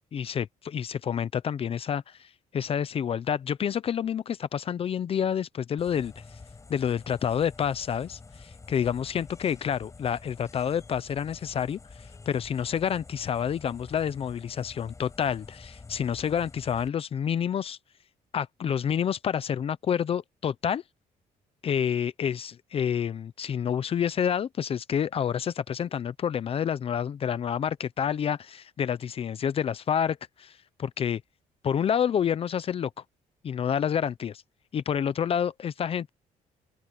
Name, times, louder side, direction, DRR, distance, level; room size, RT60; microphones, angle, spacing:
voice 1, 0.1-6.1 6.7-17.8 18.3-20.8 21.6-31.2 31.6-32.9 33.4-34.4 34.7-36.1, left 8 dB, 40° left, 0.7 m, -28 dB
sound 1, 5.8-16.9, left 4 dB, 20° left, 6.6 m, -48 dB
open air
cardioid pair, 140°, 15 cm